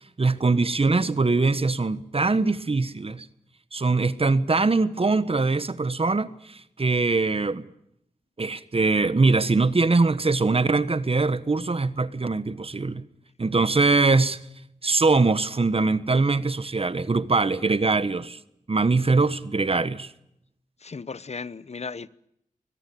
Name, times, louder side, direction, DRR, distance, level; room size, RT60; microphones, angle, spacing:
voice 1, 0.2-3.3 3.7-7.6 8.4-13.0 13.4-14.4 14.8-18.4 18.7-20.1, right 3 dB, 45° right, 1.3 m, -22 dB
voice 2, 20.8-22.1, left 4 dB, 50° left, 0.9 m, -35 dB
23.5 x 20.5 x 8.6 m
cardioid pair, 50°, 14 cm